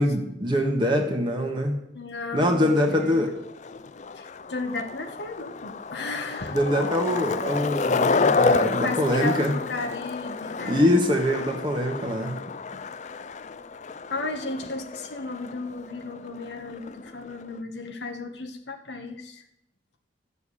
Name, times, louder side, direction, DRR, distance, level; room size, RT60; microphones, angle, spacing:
voice 1, 0.0-1.8 2.3-3.4 6.5-9.6 10.6-12.3, left 1 dB, 25° right, 1 dB, 1.5 m, -24 dB
voice 2, 1.9-3.2 4.1-6.6 8.8-10.9 14.1-19.4, left 3 dB, 65° left, 4 dB, 1.4 m, -34 dB
Skateboard, 2.4-17.6, left 4 dB, 40° left, 0.4 m, -30 dB
13.5 x 7.1 x 8.5 m, 0.81 s
head